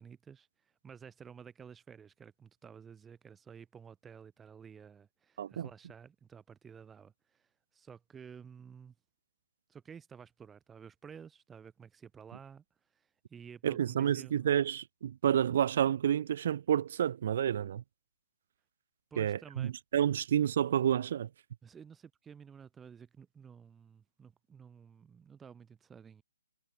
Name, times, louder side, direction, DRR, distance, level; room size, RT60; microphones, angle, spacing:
voice 1, 0.0-8.9 9.7-12.6 12.9-14.5 19.1-19.7 21.6-26.2, right 7 dB, 10° right, 2.9 m, -52 dB
voice 2, 5.4-5.7 13.6-17.8 19.2-21.3, right 9 dB, 45° right, 1.4 m, -29 dB
hypercardioid pair, 160°, 0 cm